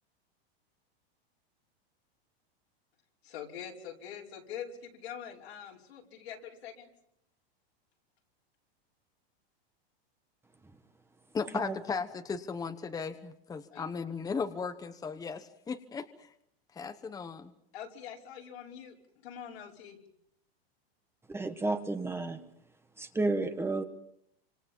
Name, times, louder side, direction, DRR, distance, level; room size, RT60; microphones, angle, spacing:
voice 1, 3.2-6.9 13.7-13.9 17.7-18.9 19.2-20.0, left 8 dB, 85° left, -1 dB, 5.5 m, -44 dB
voice 2, 11.3-16.3 16.7-17.5, left 5 dB, 10° left, 8 dB, 1.1 m, -36 dB
voice 3, 21.3-22.4 23.0-23.8, right 2 dB, 10° right, 7 dB, 1.4 m, -31 dB
27.5 x 26.5 x 5.5 m, 0.74 s
supercardioid pair, 140°, 31 cm